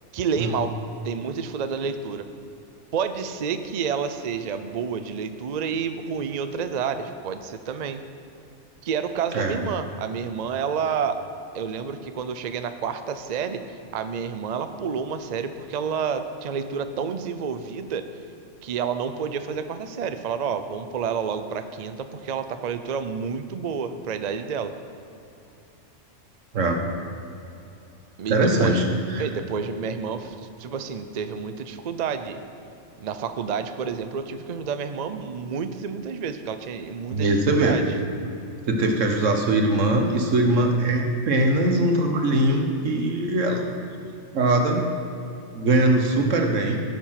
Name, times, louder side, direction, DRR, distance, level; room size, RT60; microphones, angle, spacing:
voice 1, 0.1-0.7 1.0-2.3 2.9-8.0 8.8-11.2 11.5-18.1 18.6-24.7 28.2-28.8 29.2-32.4 33.0-37.8, right 6 dB, 45° right, 9 dB, 0.6 m, -29 dB
voice 2, 28.3-28.8 29.1-29.3 37.1-37.8 38.2-38.4 38.7-43.6 44.3-44.9 45.5-46.8, right 2 dB, 90° right, 3 dB, 1.6 m, -21 dB
15.0 x 7.0 x 5.8 m, 2.8 s
omnidirectional pair, 1.3 m